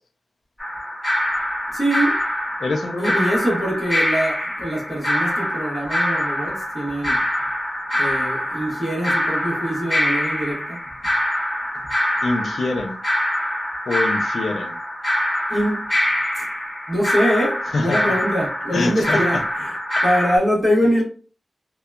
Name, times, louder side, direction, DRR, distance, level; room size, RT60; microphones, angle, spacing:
sound 1, 0.6-20.4, left 1 dB, 25° left, 0.8 m, -24 dB
voice 1, 1.7-2.2 3.0-7.2 7.9-10.8 15.5-15.9 16.3-16.4 16.9-19.7 20.0-21.0, equal, 20° right, 1.1 m, -23 dB
voice 2, 2.6-3.1 12.2-13.0 13.9-14.8 17.7-18.2 18.7-19.4, left 3 dB, 80° left, 0.3 m, -25 dB
2.7 x 2.2 x 2.3 m
wide cardioid pair, 105°, 0 cm